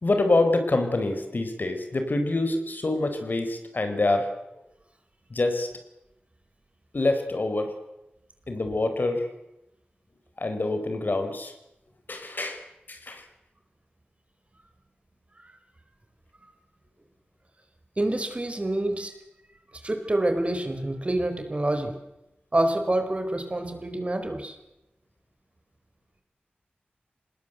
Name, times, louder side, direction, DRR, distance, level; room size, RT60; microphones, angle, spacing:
voice 1, 0.0-4.3 5.3-5.7 6.9-7.7 8.5-9.3 10.4-11.5 12.1-12.6 12.9-13.2, left 2 dB, 55° left, 7 dB, 4.5 m, -26 dB
voice 2, 18.0-19.1 19.8-21.9 22.5-24.6, right 1 dB, 35° right, 7 dB, 4.3 m, -27 dB
26.0 x 20.0 x 8.0 m, 0.92 s
wide cardioid pair, 60°, 4 cm